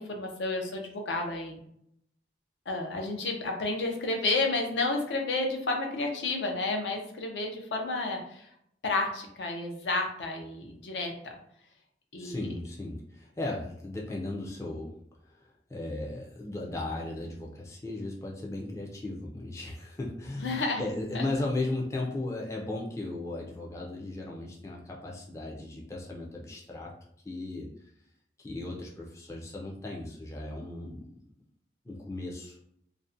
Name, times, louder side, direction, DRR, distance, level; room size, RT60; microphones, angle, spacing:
voice 1, 0.0-1.6 2.7-8.5 8.8-11.3 12.1-12.5 20.4-20.8 21.1-21.2, left 2 dB, 80° left, 2 dB, 0.5 m, -31 dB
voice 2, 12.2-14.9 15.2-26.9 27.2-27.7 28.4-31.0 31.8-32.6, left 2 dB, 15° left, -2 dB, 0.3 m, -36 dB
2.4 x 2.0 x 2.6 m, 0.71 s
head